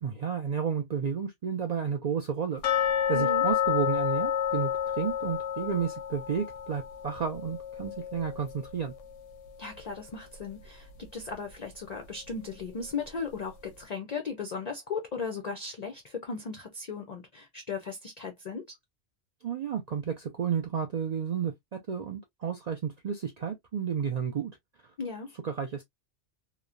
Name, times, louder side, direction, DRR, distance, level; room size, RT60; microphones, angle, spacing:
voice 1, 0.0-2.6 3.1-8.9 19.4-24.5 25.4-25.8, right 7 dB, 85° right, 0.3 m, -32 dB
sound 1, 2.6-9.5 9.8-9.9 10.4-10.5 11.0-11.1, left 9 dB, 85° left, 0.9 m, -30 dB
voice 2, 3.1-3.4 9.6-18.8 25.0-25.3, left 4 dB, 55° left, 0.4 m, -37 dB
2.9 x 2.0 x 2.3 m
omnidirectional pair, 1.3 m